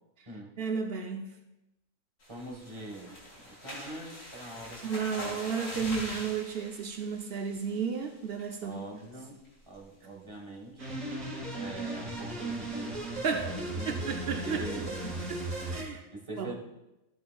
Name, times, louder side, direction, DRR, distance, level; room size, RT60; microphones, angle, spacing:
voice 1, 0.6-1.3 4.8-8.9 13.1-13.6 13.9-14.7 15.3-15.4 15.7-16.0 16.4-16.5, right 6 dB, 75° right, 4 dB, 0.5 m, -33 dB
sound 1, 2.2-8.0 8.4-8.7 9.0-9.1 9.5-9.8, left 1 dB, 65° left, 3.7 m, -43 dB
voice 2, 2.3-4.9 5.2-5.4 8.6-9.4 9.7-11.0 11.5-14.1 14.4-15.2 16.1-16.5, right 1 dB, 20° right, 0 dB, 1.4 m, -43 dB
sound 2, 10.8-15.8, right 2 dB, 55° right, 2.9 m, -36 dB
13.5 x 9.5 x 2.3 m, 0.95 s
omnidirectional pair, 1.8 m